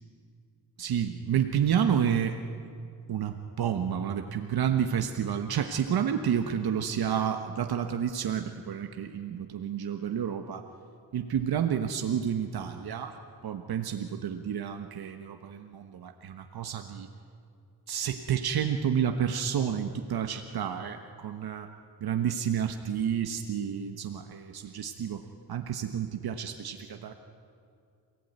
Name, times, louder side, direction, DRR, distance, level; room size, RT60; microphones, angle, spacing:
voice 1, 0.8-2.4 3.1-10.6 11.1-17.1 17.9-21.7 22.0-27.1, right 8 dB, 65° right, 6 dB, 1.3 m, -30 dB
27.5 x 18.0 x 9.5 m, 2.4 s
wide cardioid pair, 145°, 40 cm